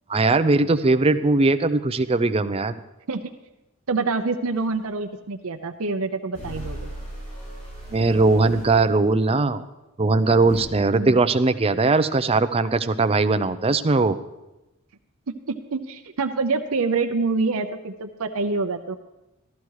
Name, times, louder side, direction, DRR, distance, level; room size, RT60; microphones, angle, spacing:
voice 1, 0.1-2.7 7.9-9.6 10.0-14.2, right 3 dB, 25° right, 10 dB, 0.5 m, -20 dB
voice 2, 3.9-6.9 10.9-11.2 15.3-19.0, right 3 dB, 80° right, 6 dB, 0.7 m, -26 dB
sound 1, 4.6-4.7 6.4-8.8 10.5-10.6, right 1 dB, 35° left, 6.3 m, -37 dB
13.5 x 13.0 x 4.8 m, 0.98 s
head